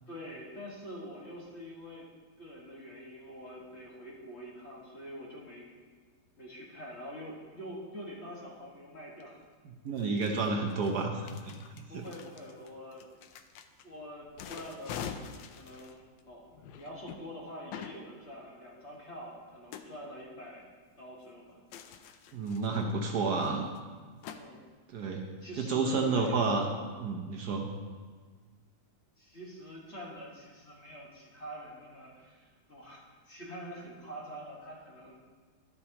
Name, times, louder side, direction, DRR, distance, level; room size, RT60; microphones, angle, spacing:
voice 1, 0.1-2.1 2.4-5.7 6.4-9.4 11.9-13.1 13.8-20.6 21.0-21.6 22.0-22.1 22.7-22.9 24.3-24.6 25.4-26.4 29.2-35.2, equal, 40° left, -3 dB, 1.8 m, -46 dB
sound 1, 9.2-9.3 10.0-13.8 14.2-17.2 17.7-18.0 19.7-19.9 21.7-22.9 23.4-23.5 23.8-23.9 24.2-24.4, left 8 dB, 85° left, 1.3 m, -45 dB
voice 2, 9.8-12.0 22.3-23.6 24.9-25.2 25.6-26.6 27.0-27.7, right 4 dB, 65° right, 1 dB, 1.3 m, -30 dB
11.5 x 8.4 x 2.9 m, 1.5 s
omnidirectional pair, 2.0 m